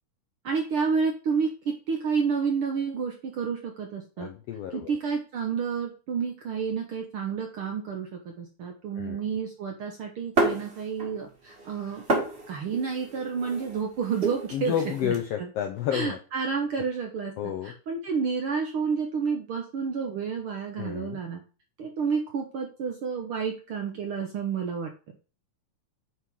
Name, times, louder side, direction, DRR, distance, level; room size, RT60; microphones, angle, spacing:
voice 1, 0.4-4.3 4.7-12.0 12.5-14.7 15.0-15.5 15.9-17.3 17.6-21.4 21.8-24.9, right 5 dB, 65° right, 2 dB, 1.4 m, -30 dB
voice 2, 4.2-4.9 9.0-9.2 14.5-16.2 17.4-17.7 20.8-21.2, left 10 dB, 80° left, 5 dB, 1.4 m, -30 dB
sound 1, 10.4-11.2 11.5-15.2, right 2 dB, 25° right, 1.6 m, -30 dB
8.6 x 3.8 x 4.6 m, 0.35 s
omnidirectional pair, 3.6 m